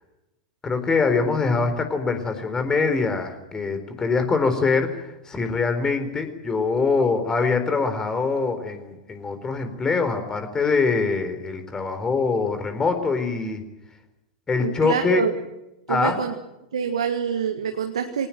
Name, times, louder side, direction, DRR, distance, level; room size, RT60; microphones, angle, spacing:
voice 1, 0.6-13.6 14.5-15.3 15.9-16.2, left 4 dB, 20° left, 8 dB, 4.1 m, -23 dB
voice 2, 14.6-15.3 15.9-16.3 16.7-18.3, right 7 dB, 75° right, 6 dB, 1.8 m, -26 dB
22.0 x 19.0 x 9.2 m, 0.93 s
figure-of-eight pair, 90°, 3 cm